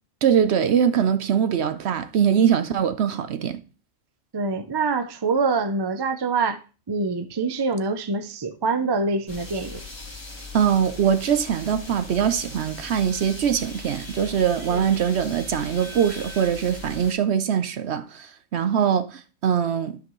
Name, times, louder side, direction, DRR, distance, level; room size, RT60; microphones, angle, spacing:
voice 1, 0.2-3.6 10.5-20.0, right 8 dB, 60° right, 0.8 m, -22 dB
voice 2, 4.3-6.6 6.9-9.8 14.7-14.9, right 4 dB, 35° right, 0.4 m, -25 dB
sound 1, 9.3-17.1, left 2 dB, 20° left, 1.7 m, -39 dB
12.5 x 5.3 x 3.1 m
omnidirectional pair, 1.4 m